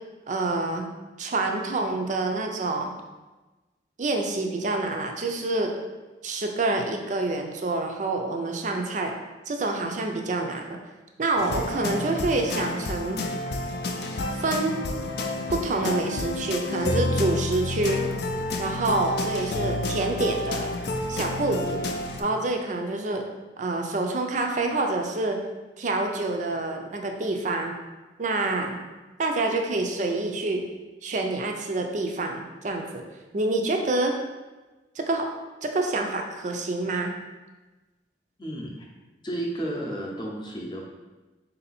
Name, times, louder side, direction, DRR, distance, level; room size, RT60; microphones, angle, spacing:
voice 1, 0.3-0.9 1.2-2.9 4.0-5.7 6.2-9.2 9.5-10.8 11.2-13.2 14.3-14.8 15.5-18.0 18.6-20.7 21.1-21.8 22.2-23.3 23.6-25.4 25.8-27.7 28.2-28.8 29.2-30.6 31.0-33.0 33.3-34.1 35.0-35.3 35.6-37.1, right 2 dB, 45° right, 3 dB, 0.5 m, -27 dB
sound 1, 11.4-22.2, left 2 dB, 65° left, 0.4 m, -29 dB
voice 2, 38.4-38.8 39.2-40.9, right 1 dB, 25° left, -1 dB, 0.7 m, -32 dB
3.8 x 2.7 x 4.1 m, 1.2 s
head